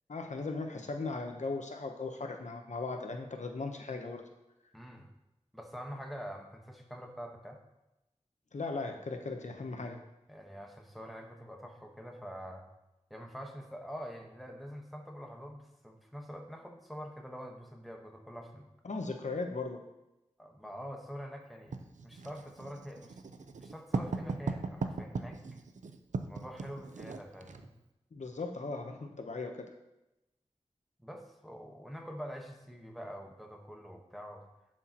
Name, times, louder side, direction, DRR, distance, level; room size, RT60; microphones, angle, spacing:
voice 1, 0.1-4.2 8.5-10.0 18.8-19.8 28.1-29.7, left 3 dB, 75° left, 4 dB, 0.8 m, -38 dB
voice 2, 4.7-5.1 5.5-7.6 10.3-12.6 13.1-18.7 20.4-21.8 22.0-23.2 23.6-25.4 26.3-27.7 31.0-34.4, equal, ahead, 2 dB, 1.2 m, -45 dB
Writing, 21.7-27.7, right 4 dB, 80° right, 0.5 m, -38 dB
11.0 x 6.5 x 2.9 m, 0.94 s
wide cardioid pair, 75°, 12 cm